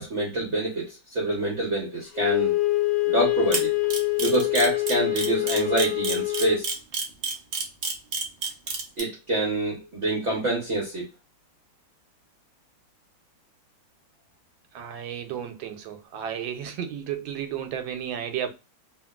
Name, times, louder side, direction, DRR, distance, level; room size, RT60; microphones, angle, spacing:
voice 1, 0.0-2.5 3.1-3.7 4.2-6.7 9.0-11.0, right 2 dB, 50° right, 0.9 m, -26 dB
Wind instrument woodwind instrument, 2.2-6.6, left 20 dB, 75° left, 1.2 m, -25 dB
Camera, 3.5-9.0, right 4 dB, 65° right, 0.5 m, -28 dB
voice 2, 14.7-18.5, right 9 dB, 90° right, 1.3 m, -33 dB
2.8 x 2.8 x 2.2 m
omnidirectional pair, 2.0 m